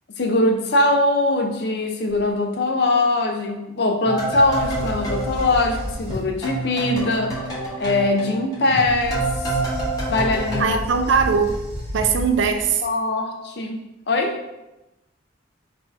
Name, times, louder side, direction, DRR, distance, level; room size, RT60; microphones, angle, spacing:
voice 1, 0.2-7.4 7.8-9.3 10.1-10.8 12.8-14.4, left 2 dB, 60° left, 4 dB, 0.5 m, -21 dB
sound 1, 2.1-2.2 4.3-6.5 8.6-12.8, equal, 35° right, 1.1 m, -32 dB
sound 2, 4.0-6.2 6.4-10.6, right 2 dB, 20° left, 1.1 m, -28 dB
voice 2, 10.6-11.6 11.9-12.8, right 5 dB, 85° right, 6 dB, 0.5 m, -20 dB
4.1 x 2.7 x 4.5 m, 0.98 s
head